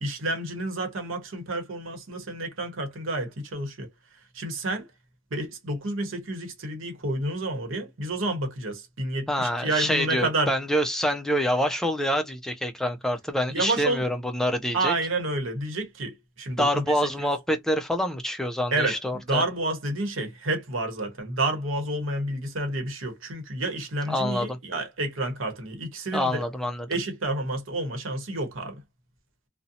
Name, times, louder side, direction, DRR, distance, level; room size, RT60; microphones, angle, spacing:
voice 1, 0.0-3.9 4.3-4.9 5.3-10.5 13.5-14.0 14.7-17.1 18.7-26.4 26.9-28.8, right 2 dB, 80° right, 0.9 m, -29 dB
voice 2, 9.3-14.9 16.6-19.4 24.1-24.6 26.1-26.9, equal, ahead, 0.3 m, -26 dB
2.6 x 2.0 x 2.6 m
head